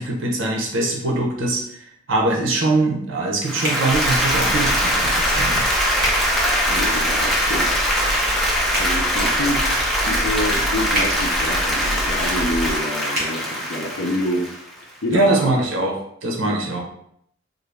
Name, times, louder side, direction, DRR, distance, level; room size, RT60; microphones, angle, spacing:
voice 1, 0.0-5.7 15.1-16.8, right 2 dB, 75° right, 0 dB, 0.7 m, -22 dB
Applause, 3.4-14.8, equal, ahead, 0.7 m, -22 dB
sound 1, 3.6-3.8 6.0-6.2 8.7-8.9 10.9-11.1 13.1-13.3, right 1 dB, 45° right, 1.4 m, -25 dB
sound 2, 3.9-12.8, equal, 30° right, 1.0 m, -31 dB
voice 2, 6.7-7.8 8.8-14.5 15.0-15.7 16.4-16.6, left 1 dB, 65° left, -1 dB, 0.5 m, -27 dB
3.8 x 2.0 x 3.4 m, 0.70 s
head